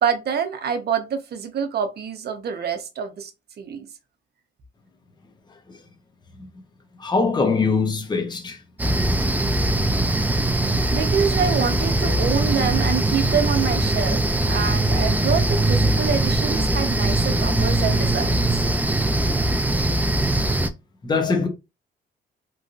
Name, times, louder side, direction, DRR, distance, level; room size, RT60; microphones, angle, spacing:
voice 1, 0.0-3.3 3.6-3.9 10.9-14.2 14.5-18.4, right 7 dB, 55° right, 0.7 m, -26 dB
voice 2, 7.0-8.6 21.0-21.5, left 4 dB, 20° left, 0.7 m, -22 dB
sound 1, 8.8-20.7, right 1 dB, 10° right, 0.4 m, -21 dB
3.1 x 2.6 x 2.5 m
cardioid pair, 90°, 20 cm